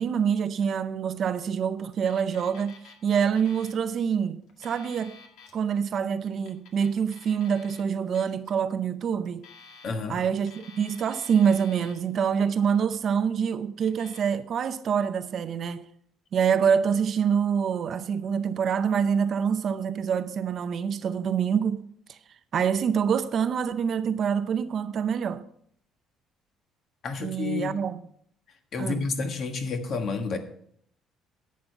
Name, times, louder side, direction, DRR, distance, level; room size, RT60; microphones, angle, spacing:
voice 1, 0.0-5.2 5.5-9.4 10.1-15.8 16.3-21.8 22.1-22.2 22.5-25.4 27.2-28.0 28.8-29.0, right 7 dB, 40° right, 0.6 m, -26 dB
Alarm, 1.9-2.9 3.2-3.8 4.4-5.5 6.3-7.8 8.1-8.5 9.2-10.1 10.4-12.0 12.5-13.0 13.8-14.2, left 5 dB, 75° left, 1.9 m, -51 dB
voice 2, 9.8-10.2 27.0-27.8 28.7-30.4, left 4 dB, 45° left, 1.4 m, -30 dB
11.0 x 8.4 x 4.4 m
cardioid pair, 155°, 0 cm